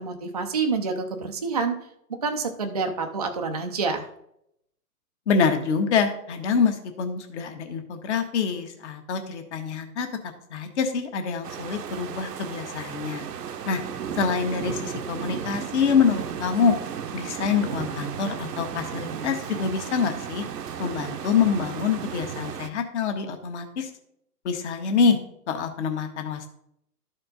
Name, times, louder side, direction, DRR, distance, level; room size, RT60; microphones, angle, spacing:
voice 1, 0.0-1.8 2.2-4.1, right 4 dB, 25° right, 4 dB, 0.4 m, -27 dB
voice 2, 5.3-10.1 10.5-13.2 13.6-13.8 14.1-16.8 17.1-20.4 20.8-23.9 24.4-25.2 25.5-26.5, left 6 dB, 45° left, 6 dB, 1.3 m, -25 dB
sound 1, 11.4-22.7, right 8 dB, 70° right, 0.8 m, -34 dB
12.5 x 4.4 x 3.9 m, 0.76 s
hypercardioid pair, 135°, 49 cm